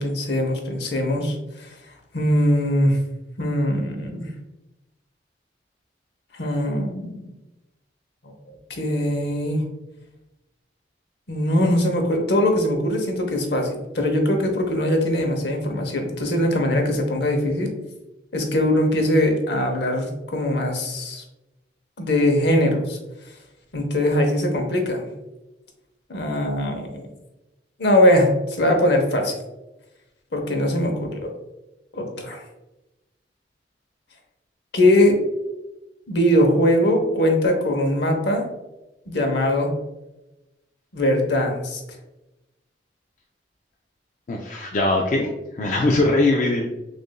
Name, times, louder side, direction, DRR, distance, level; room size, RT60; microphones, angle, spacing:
voice 1, 0.0-1.7 2.1-3.0 3.4-4.3 6.3-7.2 8.2-8.3 8.7-9.6 11.3-17.7 18.3-21.2 22.0-23.0 23.7-25.1 26.1-27.1 27.8-29.3 30.3-31.3 31.9-32.4 34.7-35.2 36.1-38.4 39.1-39.7 40.9-41.8 45.9-46.0, left 1 dB, 65° left, 3 dB, 0.8 m, -21 dB
voice 2, 44.3-46.7, left 2 dB, 45° left, 0 dB, 0.4 m, -21 dB
6.3 x 2.5 x 2.2 m, 0.99 s
head